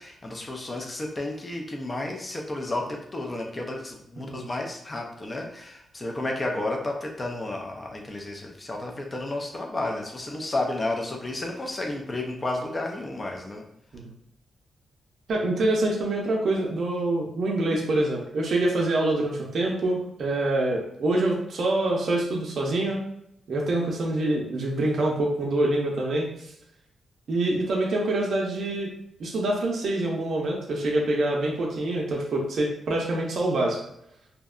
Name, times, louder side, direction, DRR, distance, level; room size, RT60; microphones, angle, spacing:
voice 1, 0.0-13.6, left 2 dB, 30° left, 1 dB, 0.5 m, -32 dB
voice 2, 15.3-23.0 23.5-26.5 27.3-28.9 29.2-33.8, right 2 dB, 70° right, -1 dB, 0.5 m, -25 dB
2.7 x 2.1 x 2.4 m, 0.75 s
cardioid pair, 85°, 0 cm